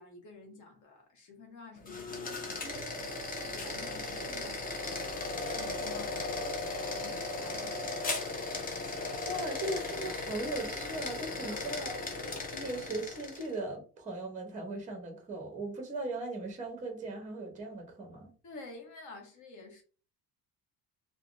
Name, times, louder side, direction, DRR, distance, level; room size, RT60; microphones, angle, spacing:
voice 1, 0.0-2.4 2.9-6.6 6.8-8.4 11.4-11.6 18.4-19.8, left 3 dB, 50° left, 0.9 m, -51 dB
sound 1, 1.8-13.5, left 3 dB, 25° left, 0.4 m, -37 dB
voice 2, 9.2-11.9 12.5-18.3, right 2 dB, 20° right, 0.7 m, -38 dB
3.3 x 2.1 x 2.4 m
cardioid pair, 165°, 40 cm